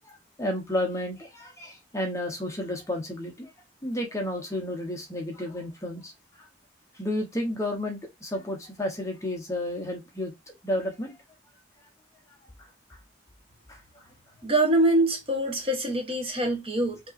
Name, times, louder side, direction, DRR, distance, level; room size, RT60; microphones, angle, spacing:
voice 1, 0.0-3.5 3.8-6.1 6.4-6.5 6.9-11.1 13.7-14.0, left 1 dB, 15° left, 0.9 m, -32 dB
voice 2, 14.4-17.0, right 1 dB, 30° right, 1.2 m, -24 dB
5.2 x 3.0 x 2.5 m
head